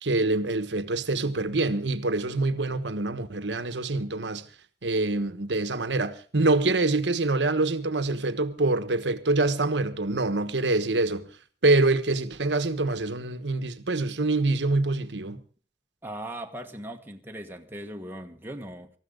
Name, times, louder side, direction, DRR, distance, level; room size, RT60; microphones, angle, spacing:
voice 1, 0.0-4.4 4.8-11.3 11.6-15.4, right 2 dB, 80° right, 1.3 m, -25 dB
voice 2, 16.0-18.9, right 1 dB, 10° right, 1.3 m, -39 dB
20.0 x 14.0 x 3.8 m
head